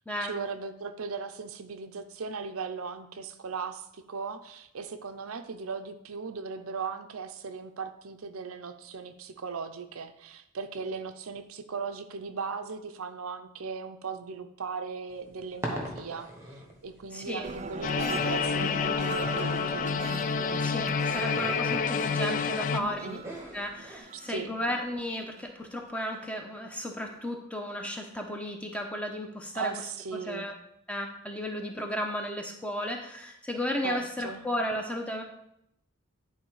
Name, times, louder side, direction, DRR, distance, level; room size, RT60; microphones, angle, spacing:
voice 1, 0.2-16.3 16.8-20.0 22.7-23.2 24.3-24.5 29.5-30.5 33.8-34.4, right 5 dB, 80° right, 8 dB, 0.6 m, -38 dB
sound 1, 15.1-24.0, right 1 dB, 10° right, 1.1 m, -42 dB
voice 2, 17.1-17.5 20.6-23.2 23.5-29.8 30.1-30.5 30.9-35.2, left 1 dB, 5° left, 2 dB, 0.8 m, -34 dB
sound 2, 17.4-26.2 26.7-27.2, right 3 dB, 30° right, 0.4 m, -41 dB
sound 3, 17.8-22.8, left 5 dB, 35° left, 0.3 m, -28 dB
10.0 x 3.9 x 4.8 m, 0.78 s
head